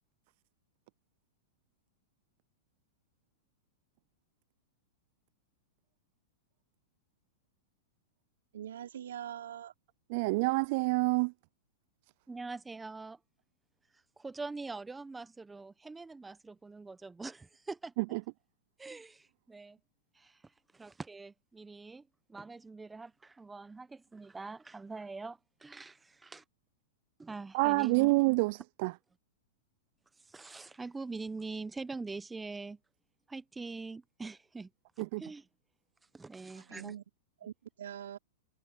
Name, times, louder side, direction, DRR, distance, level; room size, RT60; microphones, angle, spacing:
voice 1, 8.5-9.7 36.5-37.0 37.4-38.2, right 10 dB, 80° right, 4.9 m, -43 dB
voice 2, 10.1-11.3 18.0-18.2 27.5-29.0 35.0-35.2, right 26 dB, 55° right, 0.3 m, -28 dB
voice 3, 12.3-13.2 14.2-17.9 18.8-19.8 20.1-20.4 20.7-22.0 22.3-26.4 27.2-28.1 30.3-32.8 33.3-34.7 35.0-35.4 36.1-36.9, right 3 dB, 10° right, 1.0 m, -44 dB
hypercardioid pair, 120°, 0 cm